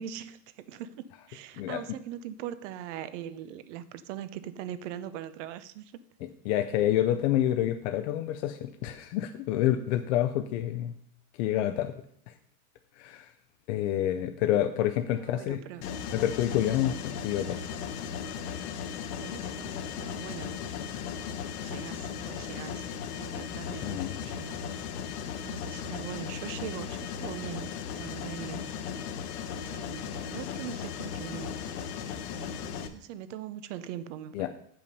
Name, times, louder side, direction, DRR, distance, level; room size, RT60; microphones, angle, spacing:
voice 1, 0.0-6.0 15.2-15.8 19.2-20.6 21.0-21.1 21.6-24.6 25.4-28.7 29.5-31.6 32.3-34.5, right 10 dB, 50° right, 14 dB, 0.7 m, -41 dB
voice 2, 6.5-10.9 11.4-11.9 13.0-13.3 13.7-15.6 16.1-17.6 23.8-24.2 34.3-34.5, left 12 dB, 50° left, 7 dB, 0.6 m, -28 dB
Mechanisms, 15.8-32.9, left 7 dB, 75° left, 1.1 m, -37 dB
8.3 x 5.8 x 5.3 m, 0.66 s
supercardioid pair, 165°, 46 cm